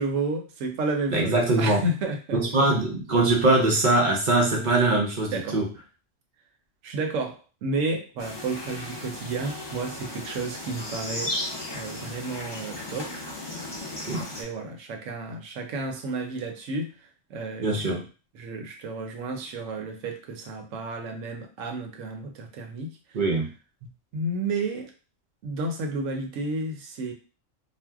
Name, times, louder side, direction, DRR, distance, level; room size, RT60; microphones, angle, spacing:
voice 1, 0.0-2.4 5.3-5.6 6.8-11.3 11.7-13.1 14.1-16.9 17.3-17.9 18.3-23.0 24.1-24.9 25.4-27.1, right 2 dB, 75° right, 3 dB, 1.0 m, -31 dB
voice 2, 1.1-1.8 2.3-5.7 14.1-14.2 17.6-18.0 23.1-23.5, right 2 dB, 50° right, 0 dB, 0.6 m, -22 dB
sound 1, 8.2-14.4, left 1 dB, 30° left, 0.5 m, -35 dB
2.6 x 2.1 x 3.4 m, 0.34 s
omnidirectional pair, 1.4 m